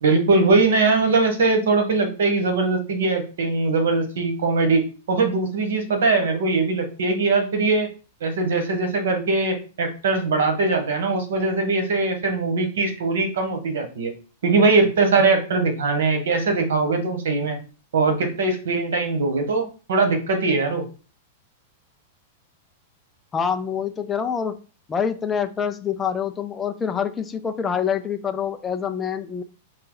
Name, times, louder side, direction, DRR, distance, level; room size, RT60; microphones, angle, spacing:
voice 1, 0.0-7.9 8.2-14.1 14.4-17.6 17.9-20.8, right 3 dB, 90° right, 6 dB, 1.4 m, -21 dB
voice 2, 23.3-24.5 24.9-29.4, left 7 dB, 10° left, 6 dB, 0.3 m, -26 dB
4.8 x 2.7 x 3.9 m, 0.35 s
supercardioid pair, 170°, 0 cm